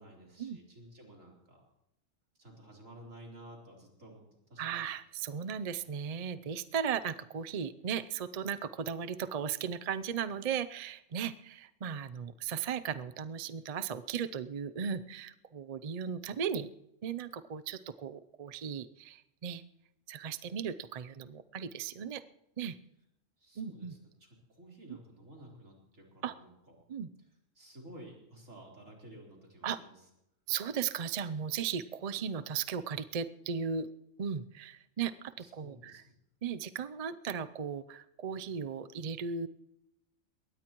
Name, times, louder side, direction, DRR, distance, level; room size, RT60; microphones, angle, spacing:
voice 1, 0.0-1.6 2.4-4.2 4.5-4.9 23.4-26.8 27.5-29.9 35.4-36.0, right 1 dB, 80° right, -2 dB, 4.4 m, -53 dB
voice 2, 4.6-16.7 17.0-19.6 20.1-22.2 22.6-22.8 23.6-23.9 26.2-26.3 26.9-27.1 29.6-29.8 30.5-33.9 34.2-36.0 36.4-39.5, right 7 dB, 45° right, 12 dB, 0.5 m, -36 dB
22.0 x 18.5 x 3.0 m, 0.82 s
omnidirectional pair, 1.3 m